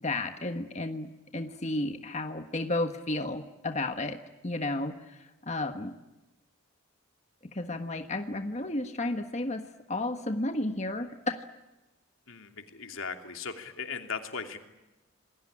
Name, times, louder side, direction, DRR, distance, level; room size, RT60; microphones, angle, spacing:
voice 1, 0.0-5.2 5.5-5.9 7.5-11.4, left 2 dB, 35° left, 6 dB, 1.4 m, -32 dB
voice 2, 12.3-14.6, left 5 dB, 80° left, 5 dB, 2.8 m, -38 dB
27.5 x 21.0 x 10.0 m, 1.0 s
head